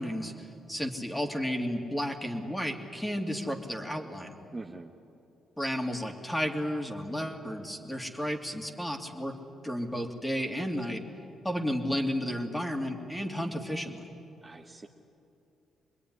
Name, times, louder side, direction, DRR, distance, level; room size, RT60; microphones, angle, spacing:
voice 1, 0.0-4.4 5.6-9.4 9.6-11.0 11.4-14.1, equal, 5° left, 3 dB, 2.7 m, -32 dB
voice 2, 4.5-4.9 14.4-14.9, right 3 dB, 20° right, 2 dB, 1.3 m, -43 dB
25.5 x 21.0 x 9.9 m, 2.7 s
cardioid pair, 90°, 0 cm